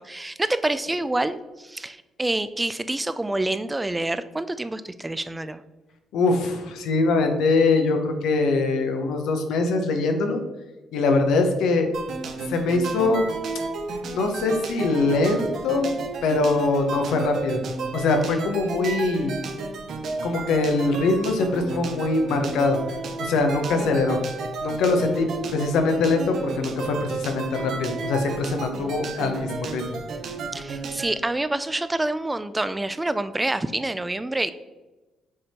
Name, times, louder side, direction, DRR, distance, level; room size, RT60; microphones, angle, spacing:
voice 1, 0.0-5.6 30.5-34.5, right 2 dB, 15° right, 13 dB, 0.3 m, -27 dB
voice 2, 6.1-10.4 10.9-11.9 12.5-13.2 14.1-16.0 16.2-17.6 17.9-19.4 20.2-22.8 23.2-24.2 24.6-30.0, left 3 dB, 85° left, 5 dB, 0.9 m, -23 dB
sound 1, 11.9-31.1, right 4 dB, 70° right, 0.9 m, -33 dB
6.6 x 3.6 x 4.3 m, 1.1 s
cardioid pair, 90°, 0 cm